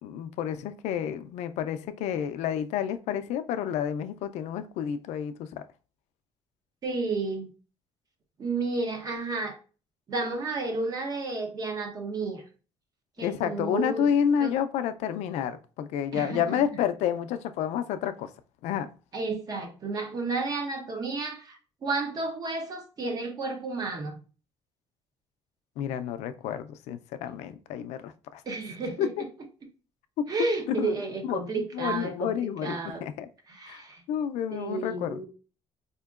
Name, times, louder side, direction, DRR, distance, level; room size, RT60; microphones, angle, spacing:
voice 1, 0.0-5.6 13.2-18.3 18.6-18.9 25.8-28.4 29.0-29.2 30.2-30.3 30.7-30.9 31.2-33.3 33.7-33.8 34.1-35.2, left 9 dB, 85° left, 0.4 m, -30 dB
voice 2, 6.8-7.5 8.4-9.6 10.1-12.4 13.2-14.1 14.4-14.6 16.1-16.6 19.1-24.2 28.5-29.1 30.3-32.3 32.6-33.1 33.5-34.0 34.5-35.3, right 3 dB, 35° right, 0.7 m, -32 dB
4.3 x 2.8 x 2.3 m
cardioid pair, 150°, 11 cm